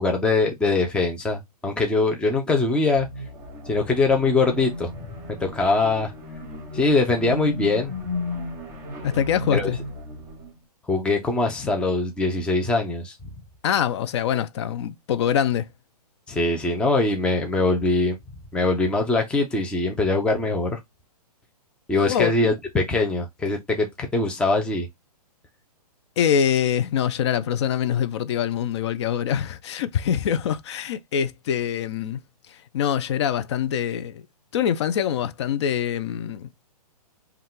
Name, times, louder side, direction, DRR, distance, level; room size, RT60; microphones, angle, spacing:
voice 1, 0.0-3.1 3.7-5.1 5.4-6.1 6.7-7.9 9.5-9.7 10.9-13.3 16.3-18.2 18.5-20.8 21.9-24.9, left 3 dB, 5° left, 0.7 m, -22 dB
sound 1, 2.9-10.6, left 2 dB, 15° right, 2.2 m, -35 dB
voice 2, 9.0-9.8 13.6-15.7 22.1-22.5 26.2-32.2 32.5-34.2 34.5-36.5, left 9 dB, 45° left, 0.6 m, -24 dB
5.3 x 2.5 x 3.7 m
figure-of-eight pair, 125°, 20 cm